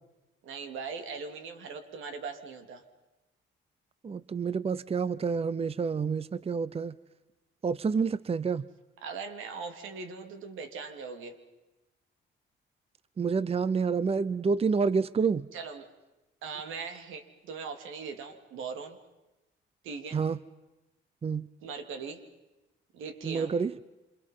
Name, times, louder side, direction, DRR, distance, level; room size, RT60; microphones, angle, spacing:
voice 1, 0.4-2.8 9.0-11.4 15.5-15.9 16.4-19.0 19.8-20.2 21.6-22.2 22.9-23.5, right 5 dB, 85° right, 7 dB, 3.3 m, -40 dB
voice 2, 4.0-6.9 7.6-8.7 13.2-15.5 20.1-20.4 21.2-21.5 23.2-23.7, right 5 dB, 30° right, 17 dB, 0.8 m, -28 dB
28.0 x 27.0 x 5.7 m, 1.0 s
cardioid pair, 90°, 20 cm